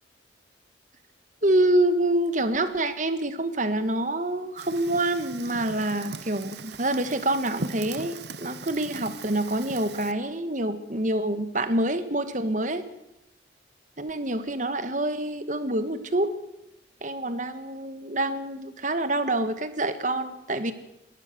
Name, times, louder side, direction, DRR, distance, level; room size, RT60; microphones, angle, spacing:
voice 1, 1.4-12.8 14.0-16.3 17.0-20.7, right 1 dB, 40° right, 10 dB, 1.6 m, -26 dB
Fire, 4.6-10.1, right 4 dB, 60° right, 0.9 m, -39 dB
22.0 x 18.5 x 6.9 m, 0.88 s
head